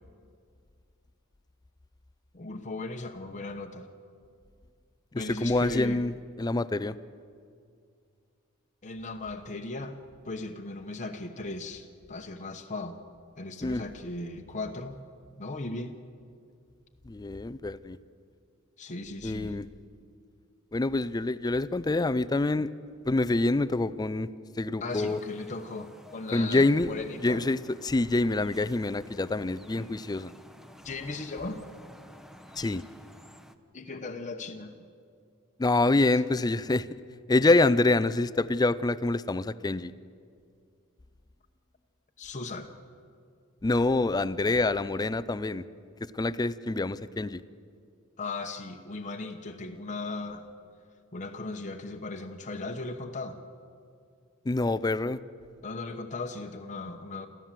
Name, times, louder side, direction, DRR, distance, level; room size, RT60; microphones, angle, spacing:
voice 1, 2.3-3.9 5.1-6.0 8.8-10.0 10.2-13.0 13.4-15.0 15.4-16.0 18.8-19.6 22.6-22.7 24.8-27.4 30.8-31.6 33.7-34.7 42.2-42.7 48.2-50.5 51.1-53.4 55.6-57.3, left 3 dB, 35° left, 3 dB, 0.9 m, -37 dB
voice 2, 5.1-6.9 13.6-13.8 17.1-18.0 19.2-19.7 20.7-22.7 23.1-24.3 24.6-25.2 26.3-26.9 27.2-30.3 32.6-32.8 35.6-36.9 37.3-39.9 43.6-45.6 46.1-47.4 54.5-55.2, left 2 dB, 20° left, 15 dB, 0.4 m, -26 dB
sound 1, 24.9-33.5, equal, ahead, 0.8 m, -52 dB
27.5 x 14.5 x 7.5 m, 2.3 s
head